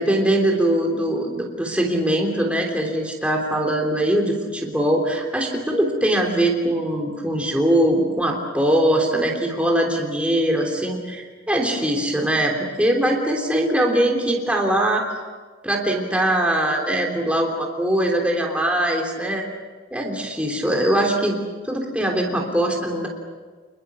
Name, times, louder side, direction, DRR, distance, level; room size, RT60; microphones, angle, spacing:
voice 1, 0.0-15.1 15.6-19.4 19.9-21.4 21.6-23.1, right 1 dB, 5° right, 0 dB, 3.3 m, -21 dB
29.5 x 21.0 x 7.1 m, 1.4 s
head